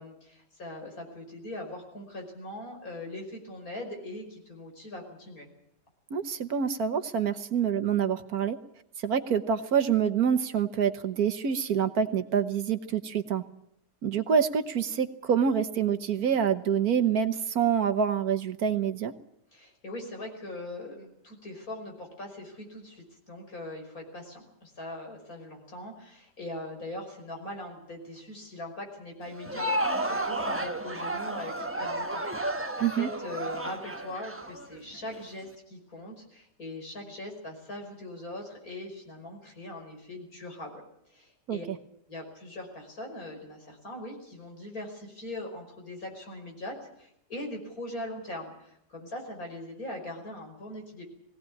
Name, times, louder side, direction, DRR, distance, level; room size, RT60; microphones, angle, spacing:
voice 1, 0.0-5.5 19.5-40.8 41.1-41.6 42.1-51.0, left 1 dB, 60° left, 2 dB, 6.1 m, -41 dB
voice 2, 6.1-8.6 9.0-13.4 14.0-19.1 32.8-33.1 41.5-41.8, right 7 dB, 70° right, 10 dB, 1.6 m, -26 dB
Crowd, 29.3-35.2, right 1 dB, 10° right, 1.1 m, -32 dB
21.5 x 17.5 x 8.6 m, 0.78 s
omnidirectional pair, 1.7 m